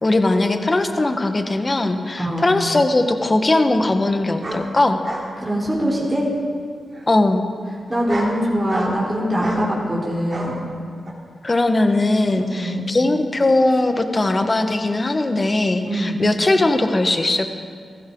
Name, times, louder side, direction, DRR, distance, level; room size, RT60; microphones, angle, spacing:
voice 1, 0.0-5.0 7.1-7.4 11.4-17.5, left 2 dB, 35° left, 7 dB, 1.4 m, -19 dB
voice 2, 2.2-2.6 5.4-6.3 7.9-10.6 12.4-12.9 15.8-16.2, equal, 15° right, -6 dB, 4.2 m, -23 dB
sound 1, 2.3-2.4 4.4-4.6 5.0-5.3 5.7-6.2 6.9-7.1 7.9-8.3 8.7-9.0 9.4-9.7 10.3-10.5 11.1-11.2, right 1 dB, 40° right, 3.7 m, -30 dB
16.5 x 15.0 x 3.9 m, 2.1 s
cardioid pair, 55°, 0 cm